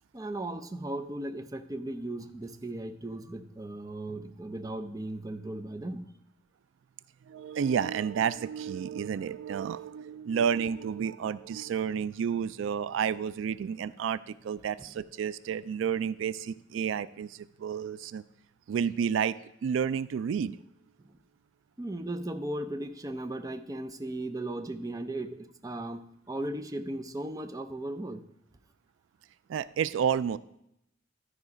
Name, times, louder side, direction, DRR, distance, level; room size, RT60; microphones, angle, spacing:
voice 1, 0.1-6.1 21.0-21.1 21.8-28.2, right 1 dB, 20° right, 9 dB, 0.5 m, -37 dB
voice 2, 7.3-18.2 18.7-19.4 19.6-20.6 29.5-30.4, right 7 dB, 90° right, 17 dB, 0.3 m, -30 dB
12.0 x 4.9 x 5.0 m, 0.77 s
head